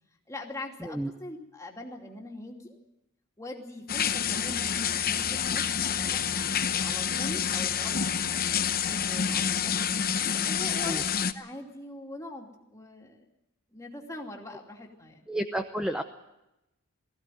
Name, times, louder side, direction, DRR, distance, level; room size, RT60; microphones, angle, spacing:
voice 1, 0.3-2.8 3.4-9.8 10.4-11.0 11.3-13.3 13.7-15.2, left 1 dB, 15° left, 0 dB, 2.8 m, -42 dB
voice 2, 0.8-1.1 10.9-11.0 15.3-16.0, right 1 dB, 5° right, 6 dB, 0.8 m, -31 dB
sound 1, 3.9-11.3, left 8 dB, 40° left, 0.8 m, -28 dB
19.5 x 15.5 x 9.2 m, 0.91 s
head